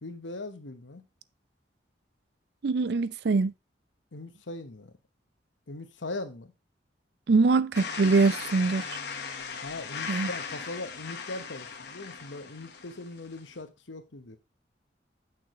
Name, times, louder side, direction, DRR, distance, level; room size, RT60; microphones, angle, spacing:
voice 1, 0.0-1.1 4.1-4.9 5.7-6.5 9.6-14.4, left 2 dB, 85° left, 1.1 m, -40 dB
voice 2, 2.6-3.5 7.3-8.8 10.1-10.3, right 4 dB, 60° right, 0.4 m, -23 dB
sound 1, 7.7-13.5, left 5 dB, 65° left, 1.2 m, -38 dB
8.7 x 6.1 x 3.1 m
head